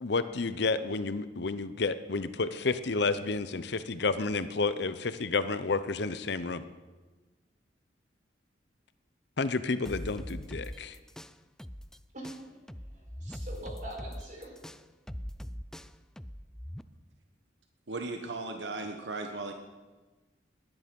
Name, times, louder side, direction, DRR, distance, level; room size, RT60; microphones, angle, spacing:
voice 1, 0.0-6.6 9.4-10.9, left 3 dB, 65° left, 12 dB, 0.7 m, -30 dB
sound 1, 9.8-12.0 12.2-16.8, equal, 5° left, 0.4 m, -41 dB
voice 2, 12.1-12.6 12.9-14.5, right 1 dB, 45° right, 0 dB, 4.4 m, -43 dB
voice 3, 17.9-19.5, right 3 dB, 70° right, 5 dB, 1.2 m, -36 dB
20.5 x 10.0 x 5.4 m, 1.2 s
head